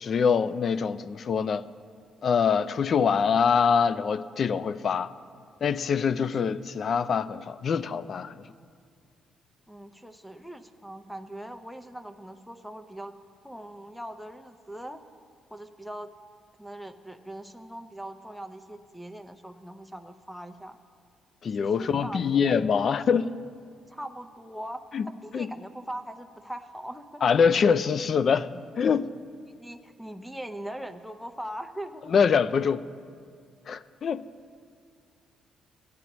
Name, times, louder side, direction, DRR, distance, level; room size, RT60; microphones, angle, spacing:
voice 1, 0.0-1.7 2.2-5.1 5.6-8.4 21.4-23.3 24.9-25.1 25.3-25.5 27.2-29.1 32.1-32.9 33.7-34.2, left 6 dB, 55° left, 0.4 m, -24 dB
voice 2, 9.7-13.2 13.4-15.0 15.5-16.1 16.6-20.8 21.6-22.3 23.9-24.8 25.2-27.2 29.6-32.1 33.7-33.8, right 1 dB, ahead, 0.6 m, -41 dB
17.5 x 9.4 x 3.0 m
cardioid pair, 90°, 0 cm